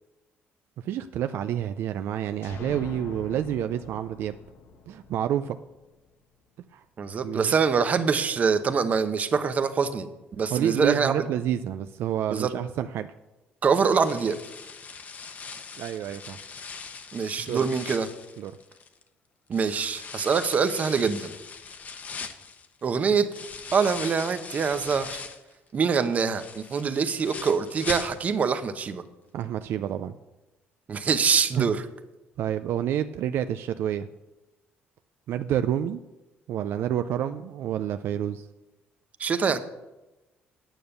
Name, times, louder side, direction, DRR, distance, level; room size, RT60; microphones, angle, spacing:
voice 1, 0.8-4.4 4.9-5.6 6.7-6.8 7.2-7.5 10.5-13.1 15.8-16.4 17.5-17.6 18.4-18.5 29.3-30.1 31.6-31.8 32.4-34.1 35.3-36.0 36.5-38.5, right 10 dB, 65° right, 10 dB, 0.4 m, -28 dB
sound 1, 2.4-6.1, left 5 dB, 70° left, 1.0 m, -44 dB
voice 2, 7.0-10.1 10.4-11.3 12.3-12.5 13.6-14.4 17.1-18.1 19.5-21.3 22.8-23.3 23.7-25.2 25.7-29.0 30.9-31.8 39.2-39.6, right 5 dB, 35° right, 10 dB, 0.8 m, -24 dB
sound 2, 13.8-19.0 19.5-25.5 25.9-28.6 28.8-28.9 29.4-29.5, left 5 dB, 40° left, 0.9 m, -40 dB
9.2 x 8.6 x 6.6 m, 1.0 s
cardioid pair, 130°, 4 cm